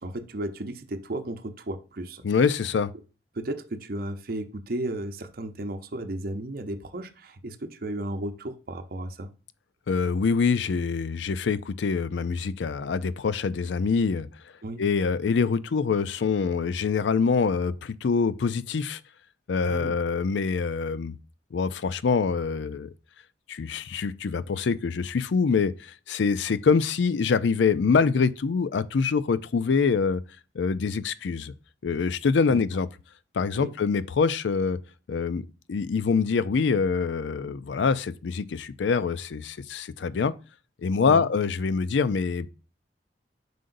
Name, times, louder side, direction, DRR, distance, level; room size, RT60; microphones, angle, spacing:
voice 1, 0.0-2.2 3.3-9.3 14.6-14.8 19.7-19.9 32.5-32.6 33.5-33.7 41.1-41.3, right 1 dB, 55° right, 0.7 m, -34 dB
voice 2, 2.2-2.9 9.9-14.3 14.8-19.0 19.5-21.2 21.5-22.9 23.5-30.2 30.5-31.5 31.8-32.9 33.3-34.8 35.1-40.3 40.8-42.6, left 5 dB, 90° left, 0.4 m, -25 dB
7.6 x 5.1 x 2.6 m
head